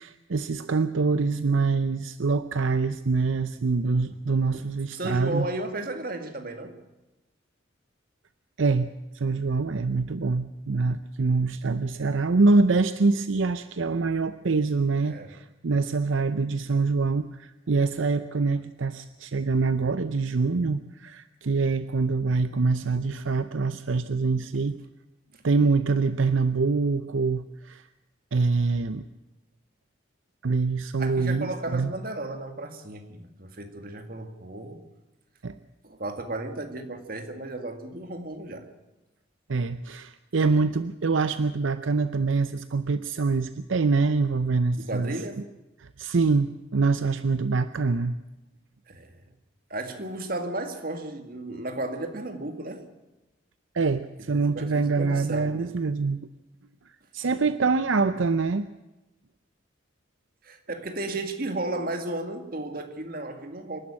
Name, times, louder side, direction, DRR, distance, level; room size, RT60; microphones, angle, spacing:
voice 1, 0.0-5.5 8.6-24.8 25.4-27.9 28.3-29.0 30.4-31.9 35.4-35.6 39.5-45.2 45.8-48.2 53.7-56.3 57.1-58.7, right 4 dB, 75° right, 12 dB, 0.6 m, -25 dB
voice 2, 4.9-6.8 15.0-15.4 31.0-34.8 35.8-38.6 44.8-45.5 48.9-49.2 49.7-52.9 54.3-55.6 60.4-63.8, right 2 dB, 45° right, 6 dB, 2.1 m, -34 dB
26.0 x 11.5 x 8.7 m, 1.0 s
head